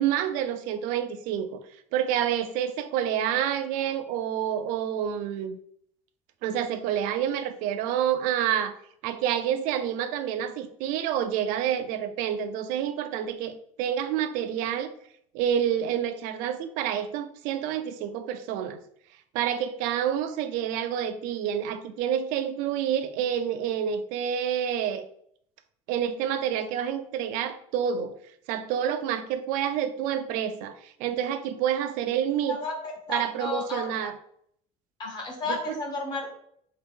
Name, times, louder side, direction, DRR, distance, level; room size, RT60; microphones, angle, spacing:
voice 1, 0.0-1.6 1.9-5.6 6.4-8.7 9.0-14.9 15.3-18.8 19.3-25.1 25.9-28.1 28.5-32.6 33.1-34.1 35.5-35.7, right 9 dB, 80° right, 10 dB, 0.4 m, -28 dB
voice 2, 33.1-33.9 35.0-36.3, left 3 dB, 30° left, 1 dB, 0.9 m, -32 dB
3.6 x 2.8 x 3.5 m, 0.67 s
cardioid pair, 150°, 14 cm